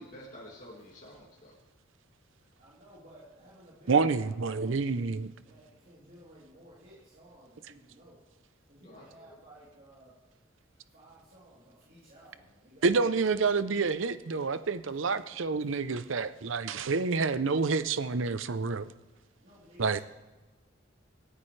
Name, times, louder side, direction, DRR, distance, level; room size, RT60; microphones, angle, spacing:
voice 1, 0.0-1.6 8.8-9.4 14.3-14.4, equal, 40° left, 2.4 m, -50 dB
voice 2, 2.6-4.7 5.0-8.1 8.7-10.1 10.9-12.9 14.9-15.2 19.4-20.0, right 1 dB, 45° right, 3.4 m, -55 dB
voice 3, 3.9-5.3 12.8-18.9 19.8-20.0, right 4 dB, 70° right, 0.6 m, -28 dB
27.0 x 9.9 x 3.3 m
head